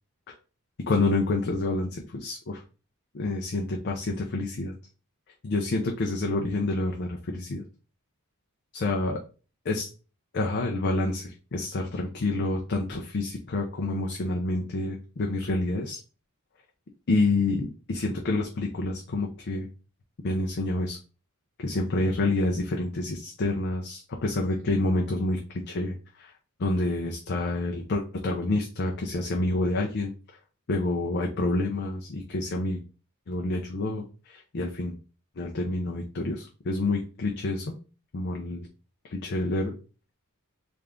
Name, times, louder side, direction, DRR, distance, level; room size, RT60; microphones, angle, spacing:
voice 1, 0.9-2.6 3.1-4.7 5.4-7.6 8.7-9.2 9.6-9.9 10.3-16.0 17.1-19.7 20.2-21.0 21.6-26.3 26.6-30.1 30.7-32.8 33.3-35.0 35.4-37.7 38.1-38.7 39.0-39.7, left 2 dB, 50° left, 1 dB, 0.5 m, -28 dB
3.3 x 2.5 x 3.6 m, 0.35 s
head